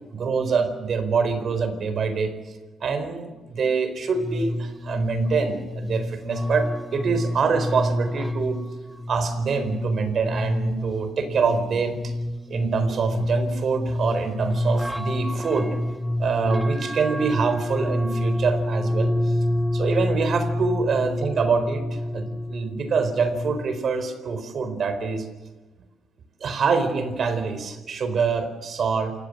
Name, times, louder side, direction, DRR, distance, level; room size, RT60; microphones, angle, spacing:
voice 1, 0.1-2.3 2.8-8.6 9.1-12.1 12.5-15.8 16.2-19.1 19.7-25.3 26.4-29.1, right 5 dB, 55° right, 10 dB, 4.3 m, -25 dB
sound 1, 4.1-23.6, left 1 dB, 5° right, 1.5 m, -28 dB
28.5 x 16.5 x 7.9 m, 1.2 s
cardioid pair, 90°, 0 cm